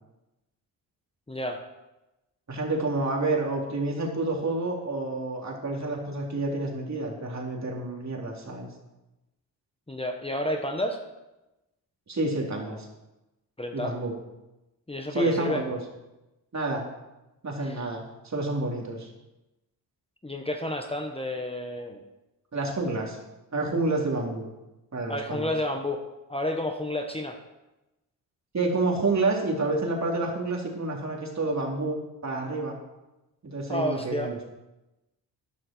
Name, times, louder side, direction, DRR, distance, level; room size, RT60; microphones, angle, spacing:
voice 1, 1.3-1.6 9.9-11.0 13.6-13.9 14.9-15.6 17.6-17.8 20.2-22.0 25.1-26.0 26.3-27.4 33.7-34.3, left 1 dB, 15° left, 4 dB, 1.5 m, -30 dB
voice 2, 2.5-8.7 12.1-12.9 13.7-14.1 15.1-15.8 16.5-16.8 17.4-19.1 22.5-23.2 23.5-24.5 24.9-25.5 28.5-32.7 33.4-34.5, right 2 dB, 40° right, -1 dB, 3.7 m, -29 dB
12.5 x 11.0 x 4.6 m, 0.99 s
cardioid pair, 65°, 41 cm